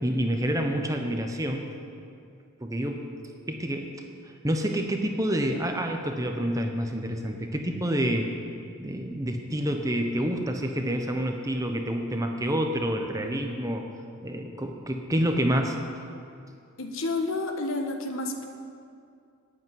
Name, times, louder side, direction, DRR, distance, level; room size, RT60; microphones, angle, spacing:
voice 1, 0.0-1.7 2.6-3.0 3.5-3.9 4.4-8.3 8.8-13.8 14.2-15.8, equal, 15° right, 4 dB, 0.9 m, -28 dB
voice 2, 16.8-18.5, left 2 dB, 65° left, 4 dB, 1.3 m, -30 dB
12.5 x 8.6 x 9.7 m, 2.4 s
head